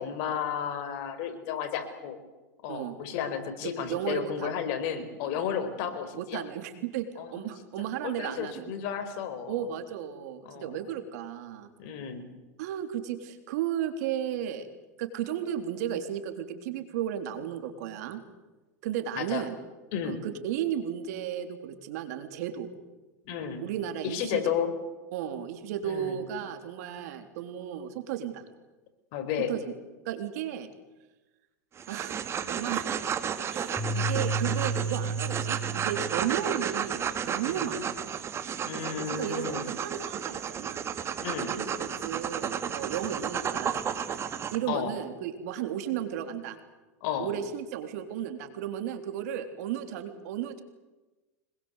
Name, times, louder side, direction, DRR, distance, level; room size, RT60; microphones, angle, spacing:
voice 1, 0.0-2.2 2.6-6.4 7.2-7.4 8.0-9.6 10.4-10.8 11.8-12.3 19.1-19.4 19.9-20.2 23.2-23.7 24.0-24.7 25.8-26.2 29.1-29.5 37.4-37.7 38.6-39.7 41.2-41.5 44.7-44.9 47.0-47.3, left 8 dB, 60° left, 8 dB, 4.8 m, -33 dB
voice 2, 3.9-4.5 6.1-8.7 9.5-11.7 12.6-14.7 15.0-18.2 18.8-19.6 20.0-22.7 23.6-24.4 25.1-28.4 29.5-29.7 30.1-30.7 31.9-32.9 33.5-37.9 39.1-40.8 41.5-43.8 44.5-46.6 47.2-50.6, right 10 dB, 70° right, 7 dB, 3.6 m, -34 dB
sound 1, 31.8-44.6, right 8 dB, 30° right, 2.3 m, -33 dB
sound 2, 33.8-36.3, right 3 dB, 10° right, 4.5 m, -31 dB
25.5 x 21.5 x 8.2 m, 1.1 s
hypercardioid pair, 115°, 9 cm